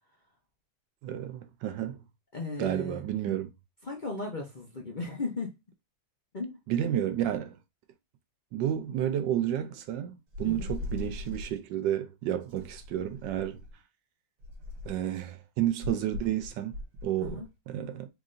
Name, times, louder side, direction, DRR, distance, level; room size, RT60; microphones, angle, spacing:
voice 1, 1.0-2.0 2.6-3.5 6.7-7.6 8.5-13.6 14.8-16.7 17.0-18.1, right 11 dB, 85° right, 1.3 m, -31 dB
voice 2, 2.3-3.0 3.8-5.5 6.3-6.6 10.4-10.7 17.2-17.5, left 3 dB, 40° left, 0.6 m, -36 dB
sound 1, 10.3-11.6 12.5-13.8 14.4-15.1 15.8-17.4, left 3 dB, 55° right, 1.3 m, -40 dB
3.9 x 3.4 x 2.5 m
omnidirectional pair, 1.9 m